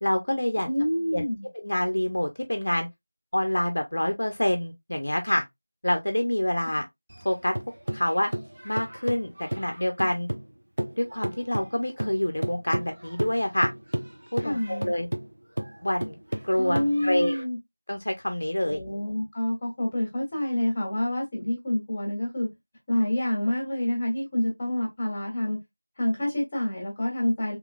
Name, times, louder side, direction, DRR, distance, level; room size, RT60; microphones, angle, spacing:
voice 1, 0.0-0.7 1.1-1.2 1.5-2.9 3.3-5.4 5.8-6.8 7.2-7.6 7.9-8.3 8.6-10.3 11.0-13.7 14.3-15.1 15.8-16.2 16.4-17.5 17.9-18.8, left 1 dB, 45° left, 0.7 m, -26 dB
voice 2, 0.6-1.5 14.4-14.9 16.6-17.6 18.6-22.5 22.9-25.6 26.0-27.6, left 1 dB, 5° left, 1.3 m, -27 dB
sound 1, 7.1-10.5 10.8-17.4, right 1 dB, 55° right, 0.7 m, -33 dB
3.3 x 3.1 x 2.4 m
figure-of-eight pair, 180°, 0 cm